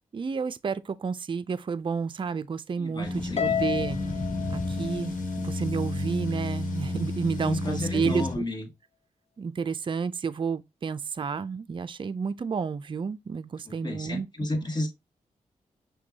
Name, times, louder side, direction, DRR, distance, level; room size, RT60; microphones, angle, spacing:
voice 1, 0.1-4.0 4.5-8.4 9.4-14.3, right 5 dB, 35° right, 0.4 m, -31 dB
voice 2, 2.8-3.6 7.4-8.7 13.7-14.9, left 1 dB, 30° left, 1.4 m, -32 dB
sound 1, 3.0-8.4, left 2 dB, 65° left, 1.2 m, -31 dB
Harp, 3.4-5.8, left 8 dB, 45° left, 0.6 m, -31 dB
5.8 x 2.3 x 2.8 m
supercardioid pair, 40°, 15 cm